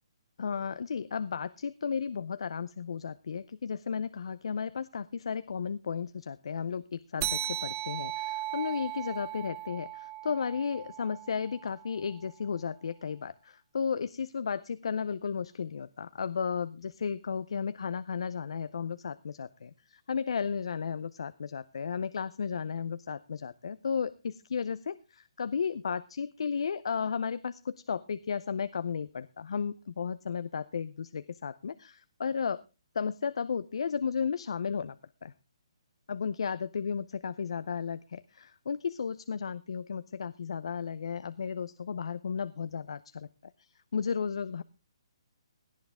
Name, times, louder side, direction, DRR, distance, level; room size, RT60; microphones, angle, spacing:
voice 1, 0.4-32.6 32.9-35.3 36.1-43.3 43.6-44.6, left 6 dB, 70° left, 14 dB, 0.6 m, -34 dB
sound 1, 7.2-12.1, right 13 dB, 30° right, 1.3 m, -37 dB
18.0 x 10.5 x 3.5 m, 0.29 s
hypercardioid pair, 150°, 3 cm